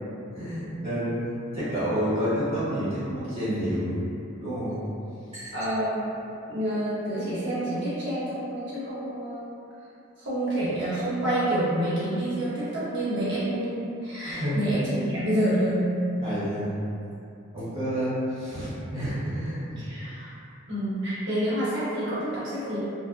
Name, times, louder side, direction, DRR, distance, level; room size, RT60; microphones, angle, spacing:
voice 1, 0.3-4.0 4.4-4.8 5.3-5.5 14.3-14.6 16.2-16.7 17.5-19.8, equal, 30° right, -14 dB, 1.3 m, -29 dB
voice 2, 5.5-6.0 6.5-9.5 10.2-15.9 19.8-20.3 20.7-22.8, right 1 dB, 55° right, -11 dB, 0.9 m, -28 dB
2.4 x 2.1 x 2.5 m, 2.7 s
head